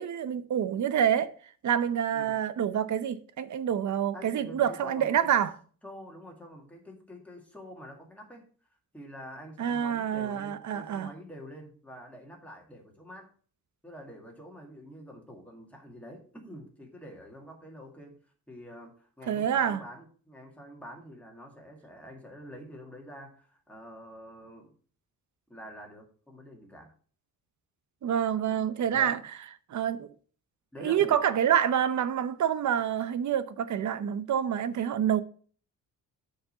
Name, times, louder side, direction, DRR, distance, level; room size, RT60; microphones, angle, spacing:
voice 1, 0.0-1.3 1.6-5.5 9.6-11.1 19.3-19.8 28.0-29.2 29.7-30.1 30.8-35.2, right 9 dB, 55° right, 0.8 m, -27 dB
voice 2, 4.1-5.1 5.8-8.5 8.9-13.3 13.8-18.2 18.5-24.8 25.5-26.9 28.9-29.2 30.7-31.2, equal, 5° left, 2.0 m, -47 dB
6.6 x 5.0 x 6.5 m
wide cardioid pair, 155°, 35 cm